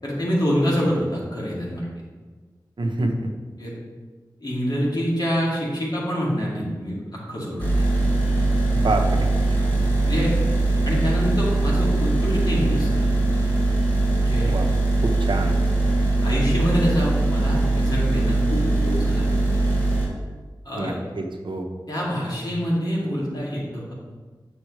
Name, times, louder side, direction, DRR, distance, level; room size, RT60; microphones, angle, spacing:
voice 1, 0.0-1.9 3.6-3.7 4.4-7.0 7.3-8.1 9.6-9.7 10.1-10.3 10.9-13.0 14.2-14.5 16.2-19.3 20.6-21.0 21.9-23.9, equal, 60° left, -6 dB, 2.4 m, -26 dB
voice 2, 2.8-3.3 8.7-9.3 14.4-14.7 15.0-15.6 20.8-21.7, right 2 dB, 75° right, 3 dB, 0.8 m, -26 dB
sound 1, 7.6-20.1, right 2 dB, 20° left, 2.4 m, -21 dB
7.6 x 6.4 x 3.2 m, 1.4 s
wide cardioid pair, 65°, 8 cm